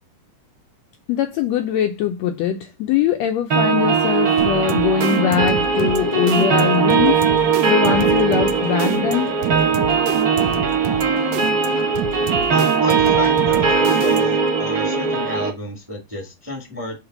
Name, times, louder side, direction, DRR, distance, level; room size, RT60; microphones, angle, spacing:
voice 1, 1.1-9.3, left 9 dB, 75° left, 1.6 m, -21 dB
sound 1, 3.5-15.5, right 5 dB, 55° right, 1.0 m, -19 dB
sound 2, 4.4-14.5, right 10 dB, 85° right, 1.4 m, -29 dB
voice 2, 12.5-17.0, left 1 dB, 5° right, 1.1 m, -30 dB
6.5 x 3.3 x 6.0 m
omnidirectional pair, 3.5 m